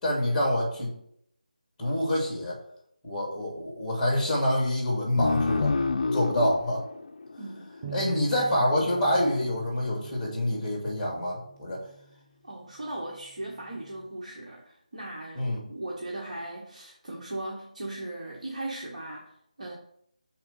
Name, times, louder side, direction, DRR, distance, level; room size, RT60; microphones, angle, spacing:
voice 1, 0.0-0.9 1.8-2.6 3.0-5.7 6.1-6.8 7.9-11.8 15.4-15.7, left 1 dB, 10° left, -2 dB, 2.2 m, -26 dB
sound 1, 5.2-8.3, left 4 dB, 50° left, 0.4 m, -28 dB
voice 2, 7.4-8.2 12.4-19.7, right 1 dB, 55° right, -3 dB, 1.3 m, -38 dB
Bass guitar, 7.8-12.2 12.9-14.1, right 5 dB, 20° right, 0.5 m, -46 dB
5.8 x 4.2 x 5.6 m, 0.71 s
figure-of-eight pair, 155°, 4 cm